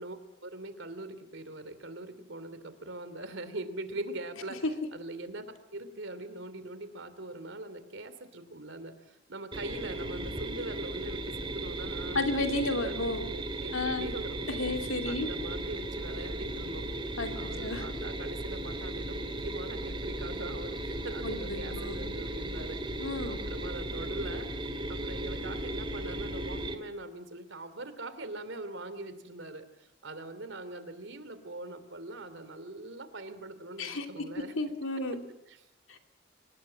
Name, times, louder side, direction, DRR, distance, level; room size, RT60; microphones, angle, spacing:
voice 1, 0.0-5.4 5.7-12.4 12.6-13.0 13.3-14.5 15.0-16.9 17.3-24.5 24.9-34.5 35.5-35.7, right 2 dB, 65° right, 12 dB, 2.9 m, -42 dB
sound 1, 9.5-26.8, right 1 dB, 25° right, 2.5 m, -36 dB
voice 2, 12.1-13.3 13.7-14.1 14.5-15.3 17.2-17.3 17.6-17.8 21.2-22.0 23.0-23.4 33.8-34.0 34.5-35.2 35.9-36.0, left 2 dB, 85° left, 5 dB, 3.0 m, -32 dB
25.0 x 20.5 x 7.5 m, 0.86 s
head